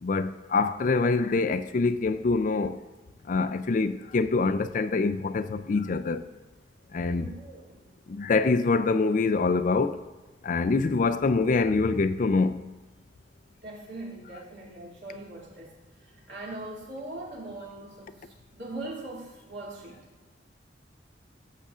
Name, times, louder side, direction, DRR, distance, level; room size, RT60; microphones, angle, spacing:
voice 1, 0.0-2.8 3.3-6.2 6.9-7.3 8.1-10.0 10.4-12.8, left 3 dB, 45° left, 0.4 m, -25 dB
voice 2, 7.2-7.9 13.6-15.7 16.0-20.0, right 2 dB, 70° right, 2.5 m, -41 dB
14.0 x 7.3 x 2.5 m
head